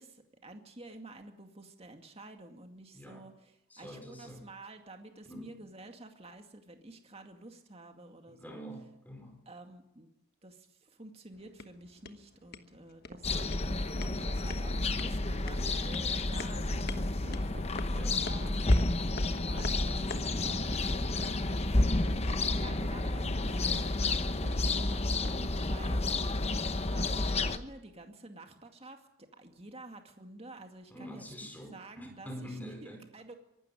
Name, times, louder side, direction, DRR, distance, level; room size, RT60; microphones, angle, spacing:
voice 1, 0.0-8.6 9.5-10.1 10.4-13.5 13.7-17.5 18.2-18.8 19.3-20.8 22.6-26.0 26.9-31.2 31.7-33.3, right 2 dB, 25° right, 5 dB, 2.2 m, -50 dB
voice 2, 2.9-3.3 3.7-4.5 5.3-5.6 8.3-9.4 17.9-18.3 30.9-33.0, equal, 5° left, 4 dB, 4.4 m, -46 dB
sound 1, 11.3-20.4, left 4 dB, 45° left, 1.2 m, -48 dB
sound 2, 13.1-25.9, right 1 dB, 45° right, 1.9 m, -47 dB
sound 3, 13.2-27.6, left 2 dB, 30° left, 0.9 m, -30 dB
24.0 x 12.5 x 9.9 m, 0.87 s
head